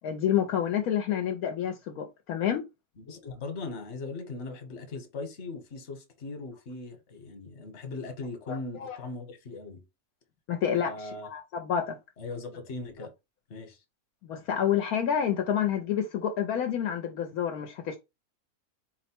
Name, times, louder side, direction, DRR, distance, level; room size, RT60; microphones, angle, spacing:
voice 1, 0.0-2.6 8.5-9.0 10.5-12.0 14.2-18.0, left 9 dB, 75° left, 1.0 m, -29 dB
voice 2, 3.0-9.8 10.9-11.3 12.2-13.1 13.5-13.8, left 3 dB, 50° left, 1.2 m, -39 dB
4.3 x 2.1 x 4.3 m
omnidirectional pair, 1.6 m